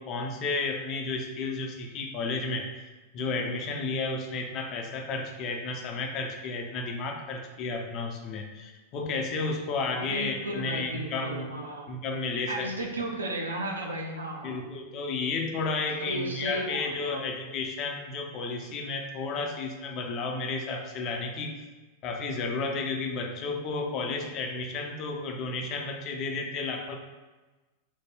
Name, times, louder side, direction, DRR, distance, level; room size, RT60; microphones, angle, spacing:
voice 1, 0.0-2.7 3.1-11.5 11.9-12.7 14.4-21.6 22.0-27.0, left 3 dB, 35° left, 2 dB, 0.4 m, -32 dB
voice 2, 9.9-11.9 12.5-14.6 16.0-17.2, right 1 dB, 75° right, 1 dB, 0.4 m, -34 dB
2.6 x 2.1 x 3.4 m, 1.2 s
figure-of-eight pair, 90°, 0 cm